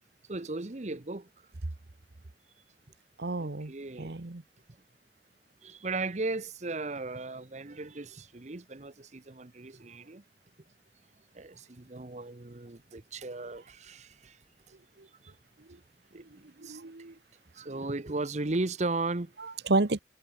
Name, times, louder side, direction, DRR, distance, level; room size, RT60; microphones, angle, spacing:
voice 1, 0.3-1.3 3.4-4.1 5.6-10.2 11.3-14.3 16.1-16.8 17.6-19.3, right 2 dB, 40° right, 0.9 m, -36 dB
voice 2, 3.2-4.4 15.0-15.1 15.6-15.8 16.6-17.1 19.4-20.0, right 3 dB, 70° right, 1.1 m, -31 dB
head